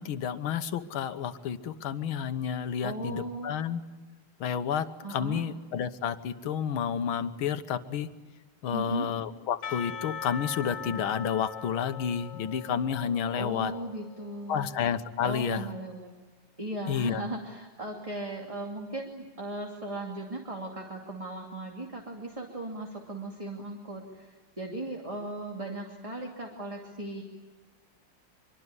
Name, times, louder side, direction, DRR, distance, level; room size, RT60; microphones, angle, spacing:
voice 1, 0.0-3.8 4.4-8.1 8.6-13.7 14.5-15.7 16.9-17.2, left 8 dB, 80° left, 11 dB, 1.9 m, -30 dB
voice 2, 2.8-3.5 5.0-5.4 8.7-9.1 13.3-14.7 15.2-16.1 16.6-27.2, right 1 dB, 15° right, 1 dB, 2.6 m, -37 dB
Percussion / Church bell, 9.6-14.9, left 7 dB, 65° left, 1.9 m, -41 dB
24.5 x 24.5 x 9.7 m, 1.2 s
omnidirectional pair, 2.2 m